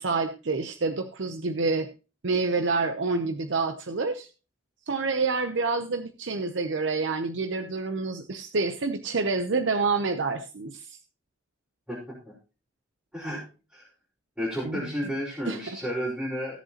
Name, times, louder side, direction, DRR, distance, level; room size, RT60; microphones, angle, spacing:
voice 1, 0.0-1.9 2.2-4.3 4.9-11.0 14.6-14.9 15.5-15.8, right 4 dB, 80° right, 8 dB, 0.7 m, -28 dB
voice 2, 13.1-13.4 13.7-13.8 14.4-16.6, equal, 5° right, -9 dB, 4.5 m, -32 dB
16.0 x 7.8 x 2.9 m, 0.32 s
head